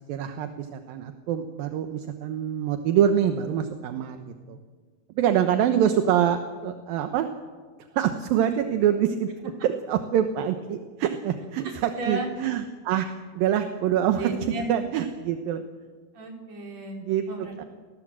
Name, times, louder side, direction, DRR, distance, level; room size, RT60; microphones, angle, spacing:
voice 1, 0.1-4.6 5.2-7.3 7.9-13.1 13.4-14.3 14.7-15.6 17.0-17.2 17.6-17.7, right 9 dB, 75° right, 7 dB, 2.8 m, -25 dB
voice 2, 11.6-12.4 14.2-14.6 16.1-17.0 17.3-17.7, right 2 dB, 45° right, 1 dB, 4.9 m, -34 dB
30.0 x 19.5 x 7.6 m, 1.5 s
omnidirectional pair, 4.2 m